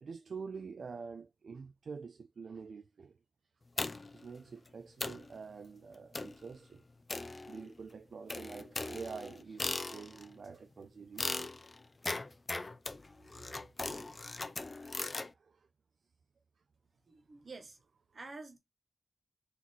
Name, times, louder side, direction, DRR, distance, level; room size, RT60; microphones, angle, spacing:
voice 1, 0.0-3.2 3.8-6.8 7.5-11.6 13.5-14.3 15.3-15.7, right 5 dB, 75° right, 0.3 m, -47 dB
sound 1, 3.8-4.2 4.7-4.8 5.0-5.3 6.1-6.5 7.1-7.8 8.3-10.3 11.2-15.3, left 3 dB, 40° left, 0.5 m, -39 dB
voice 2, 17.1-17.8 18.1-18.6, right 3 dB, 55° right, 1.3 m, -48 dB
4.1 x 3.0 x 4.0 m
cardioid pair, 70°, 0 cm